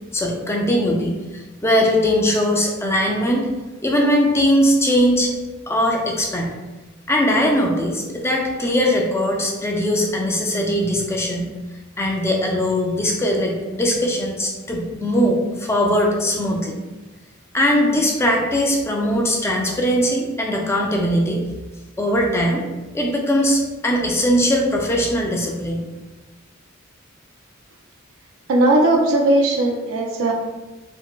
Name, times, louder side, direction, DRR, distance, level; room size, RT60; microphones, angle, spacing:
voice 1, 0.1-3.4 3.8-5.3 5.7-6.5 7.1-11.5 12.0-16.8 17.5-21.4 22.0-22.7 22.9-25.9, equal, 15° left, 0 dB, 0.3 m, -20 dB
voice 2, 28.5-30.3, right 1 dB, 75° right, 0 dB, 0.4 m, -17 dB
4.4 x 2.0 x 2.2 m, 1.1 s
head